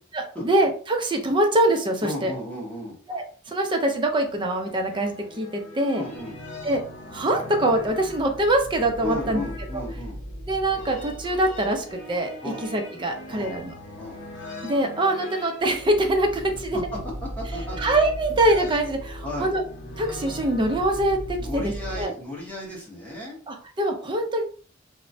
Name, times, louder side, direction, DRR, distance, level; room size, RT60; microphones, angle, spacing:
voice 1, 0.4-2.3 3.1-6.0 6.6-6.8 7.1-9.4 9.7-9.8 10.5-13.7 14.6-16.8 17.8-19.6 20.0-22.1 23.5-24.4, right 1 dB, 25° right, 3 dB, 0.5 m, -24 dB
voice 2, 2.0-2.9 5.9-6.3 9.0-10.2 12.4-12.6 13.3-13.5 14.0-14.2 17.4-17.9 19.2-19.5 21.4-23.4, left 1 dB, 10° left, -4 dB, 1.0 m, -34 dB
sound 1, 3.8-22.0, equal, 70° left, 0.7 m, -38 dB
3.0 x 2.1 x 2.6 m, 0.42 s
head